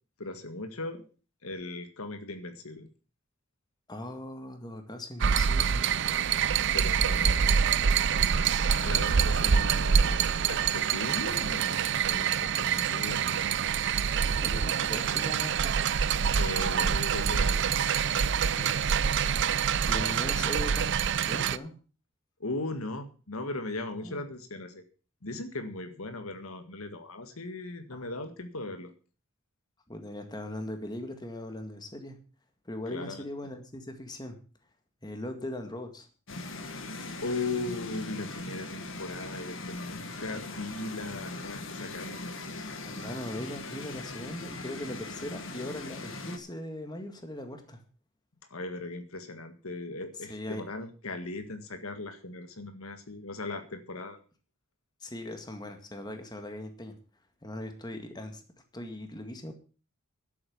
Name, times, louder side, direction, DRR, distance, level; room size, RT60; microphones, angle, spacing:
voice 1, 0.2-1.0 1.4-2.9 6.7-7.6 8.2-13.6 16.2-17.7 20.2-20.4 22.4-24.8 25.2-28.9 32.9-33.2 37.2-42.2 48.5-54.2, left 2 dB, 80° left, 8 dB, 1.8 m, -38 dB
voice 2, 3.9-5.9 14.4-15.8 18.5-18.8 19.9-21.7 24.0-24.2 27.9-28.0 29.9-32.2 32.7-34.4 35.0-36.1 42.8-47.8 50.3-50.6 55.0-56.9 57.4-58.4 58.7-59.5, left 1 dB, 20° left, 5 dB, 1.9 m, -39 dB
sound 1, 5.2-21.6, right 7 dB, 55° right, 0.5 m, -26 dB
sound 2, 36.3-46.4, left 2 dB, 60° left, 1.6 m, -40 dB
11.0 x 8.7 x 7.0 m, 0.37 s
head